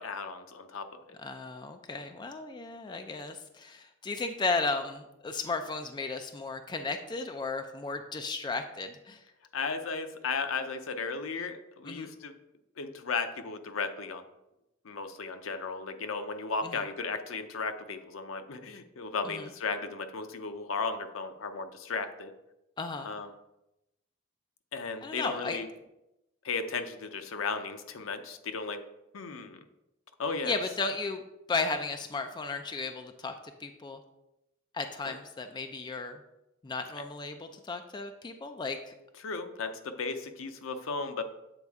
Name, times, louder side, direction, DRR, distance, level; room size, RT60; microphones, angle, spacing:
voice 1, 0.0-1.2 9.5-12.3 12.8-14.2 14.8-22.3 23.0-23.3 24.7-25.7 26.4-28.8 29.1-29.6 30.2-30.6 35.0-35.1 39.2-41.2, left 4 dB, 75° left, 8 dB, 0.6 m, -35 dB
voice 2, 1.2-9.2 11.8-12.1 16.6-16.8 19.2-19.5 22.8-23.1 25.0-25.6 30.4-33.3 33.6-34.0 34.7-36.2 36.6-38.9, left 3 dB, 20° left, 6 dB, 0.4 m, -35 dB
8.0 x 4.2 x 3.5 m, 0.89 s
head